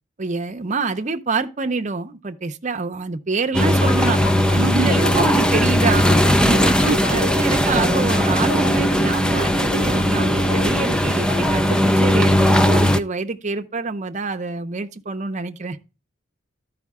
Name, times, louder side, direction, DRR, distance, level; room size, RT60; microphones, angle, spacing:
voice 1, 0.2-4.2 4.5-6.1 7.0-15.8, right 3 dB, 40° right, 0.7 m, -26 dB
sound 1, 3.5-13.0, equal, 5° left, 0.4 m, -18 dB
sound 2, 3.7-11.8, left 2 dB, 60° left, 1.1 m, -32 dB
voice 2, 4.6-4.9 6.5-7.6, right 6 dB, 85° right, 0.3 m, -28 dB
12.5 x 5.0 x 3.5 m
head